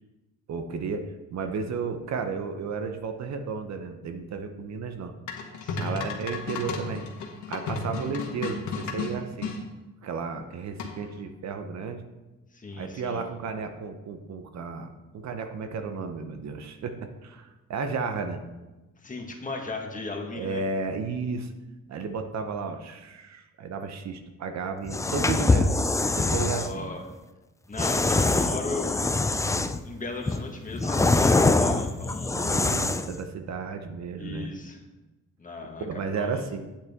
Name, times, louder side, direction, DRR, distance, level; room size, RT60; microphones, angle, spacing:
voice 1, 0.5-5.1 5.8-7.0 7.5-9.5 10.0-12.0 12.8-18.4 20.3-21.5 21.9-25.7 26.1-26.9 32.3-34.5 35.8-36.7, right 5 dB, 60° right, 7 dB, 0.9 m, -33 dB
sound 1, 5.3-9.6 10.8-11.2, left 4 dB, 70° left, 1.5 m, -33 dB
voice 2, 5.6-6.0 12.5-13.2 19.0-20.6 26.6-27.0 27.7-29.1 29.8-32.4 34.2-34.8 35.4-36.4, left 3 dB, 25° left, 2 dB, 1.7 m, -37 dB
sound 2, 24.8-26.7 27.8-29.9 30.3-33.2, left 3 dB, 10° left, 0.4 m, -24 dB
8.7 x 8.1 x 3.6 m, 1.1 s
cardioid pair, 90°, 30 cm